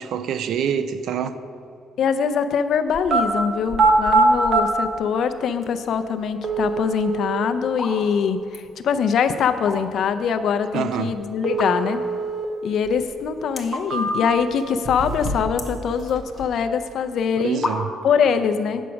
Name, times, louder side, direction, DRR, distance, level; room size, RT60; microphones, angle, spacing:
voice 1, 0.0-1.4 10.7-11.1 17.4-17.9, right 8 dB, 65° right, 0.4 m, -26 dB
voice 2, 2.0-12.0 12.6-17.6 18.0-18.8, left 6 dB, 55° left, 0.5 m, -23 dB
sound 1, 2.9-3.2 3.7-4.6 5.6-5.7 6.4-7.5 11.4-12.5 12.9-13.0 13.6-14.4 14.8-15.6 15.9-16.4, right 3 dB, 40° right, 1.0 m, -22 dB
sound 2, 6.9-7.2 7.7-8.0 8.3-8.7 9.4-10.1 10.5-10.6 11.5-12.1 12.6-12.7 12.9-13.0 13.5-13.9 14.3-14.7 15.0-16.4 17.1-17.2 17.6-18.2, left 3 dB, 20° left, 1.0 m, -31 dB
8.2 x 6.2 x 5.8 m
cardioid pair, 145°, 0 cm